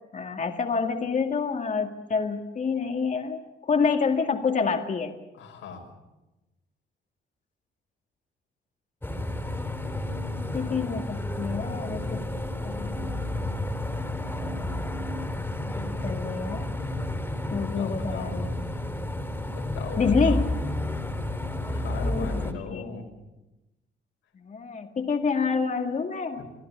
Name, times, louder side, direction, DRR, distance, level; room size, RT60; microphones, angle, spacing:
voice 1, 0.1-5.1 10.0-12.2 12.6-13.6 15.6-16.7 17.5-18.5 20.0-20.5 22.0-22.9 24.4-26.4, left 5 dB, 40° left, 4 dB, 2.2 m, -28 dB
voice 2, 5.3-5.8 17.5-18.5 19.5-20.5 21.7-23.2 26.4-26.5, left 5 dB, 90° left, 2 dB, 6.1 m, -39 dB
sound 1, 9.0-22.5, left 1 dB, 10° left, 3.4 m, -31 dB
27.5 x 16.0 x 8.6 m, 1.0 s
cardioid pair, 90°, 20 cm